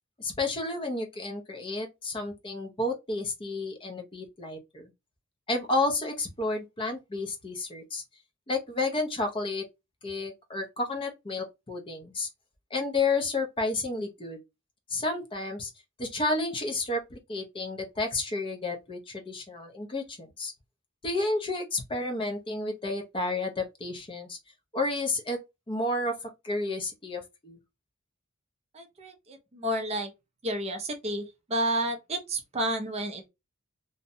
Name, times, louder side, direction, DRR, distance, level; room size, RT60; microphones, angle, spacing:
voice 1, 0.2-4.9 5.5-8.0 8.5-9.6 10.0-12.3 12.7-14.4 14.9-15.7 16.0-20.5 21.0-24.4 24.7-25.4 25.7-26.1 26.4-27.6, left 2 dB, 25° left, 0.5 m, -31 dB
voice 2, 28.7-30.1 30.4-33.3, right 1 dB, 30° right, 0.4 m, -31 dB
2.6 x 2.1 x 2.6 m
head